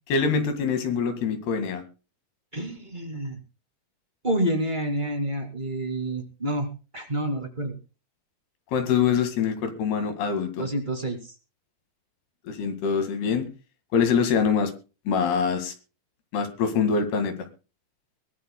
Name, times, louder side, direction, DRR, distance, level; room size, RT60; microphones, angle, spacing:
voice 1, 0.1-1.8 8.7-10.6 12.5-13.5 13.9-14.7 15.1-15.7 16.3-17.3, left 6 dB, 80° left, 8 dB, 4.0 m, -24 dB
voice 2, 2.5-3.4 4.2-6.7 6.9-7.7 10.6-11.3, right 1 dB, 15° right, 3 dB, 1.7 m, -28 dB
22.0 x 17.0 x 2.2 m, 0.33 s
omnidirectional pair, 4.6 m